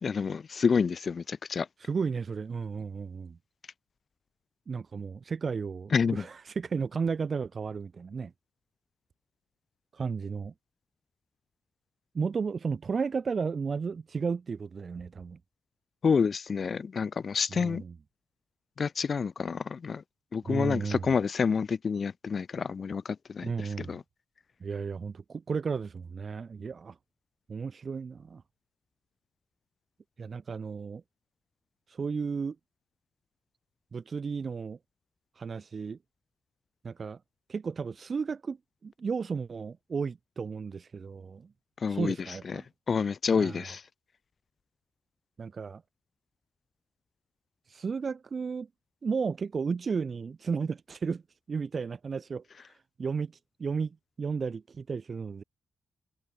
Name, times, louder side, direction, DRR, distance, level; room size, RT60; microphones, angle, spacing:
voice 1, 0.0-1.7 5.9-6.2 16.0-17.8 18.8-20.0 20.3-24.0 41.8-42.2 42.5-42.6 42.9-43.8, left 5 dB, 35° left, 1.7 m, -28 dB
voice 2, 1.8-3.4 4.7-8.3 9.9-10.5 12.1-15.4 17.5-18.0 20.4-21.1 23.4-24.0 24.6-27.0 27.5-28.4 30.2-31.0 31.9-32.5 33.9-34.8 35.4-36.0 36.8-37.2 37.5-38.6 38.8-41.5 41.9-42.6 43.3-43.7 45.4-45.8 47.7-48.7 49.0-51.2 51.5-52.4 53.0-53.3 53.6-55.4, right 5 dB, 30° right, 4.9 m, -33 dB
wide cardioid pair, 170°, 0 cm